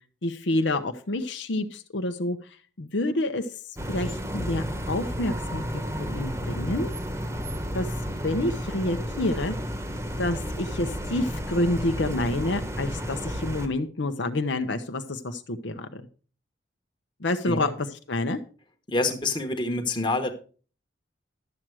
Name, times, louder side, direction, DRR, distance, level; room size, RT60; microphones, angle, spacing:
voice 1, 0.2-2.4 2.8-3.5 3.9-6.9 7.7-7.9 8.2-9.6 10.2-16.0 17.2-17.7 18.1-18.4, left 2 dB, 65° left, 7 dB, 0.8 m, -28 dB
sound 1, 3.8-13.7, equal, 15° right, 1.1 m, -32 dB
voice 2, 18.9-20.3, left 2 dB, 25° left, 5 dB, 1.2 m, -27 dB
12.0 x 7.5 x 4.7 m, 0.38 s
head